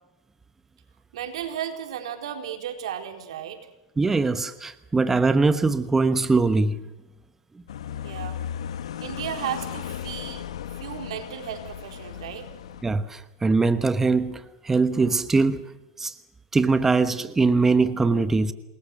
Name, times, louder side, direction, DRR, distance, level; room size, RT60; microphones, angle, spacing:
voice 1, 1.1-3.7 8.0-8.4 9.0-10.4 10.8-12.5, right 9 dB, 85° right, 4.3 m, -34 dB
voice 2, 4.0-6.8 10.3-10.4 12.8-15.6 16.0-16.1 16.5-18.5, right 3 dB, 10° right, 1.2 m, -22 dB
sound 1, 7.7-12.8, left 9 dB, 90° left, 1.7 m, -36 dB
28.0 x 21.0 x 6.6 m
supercardioid pair, 130°, 3 cm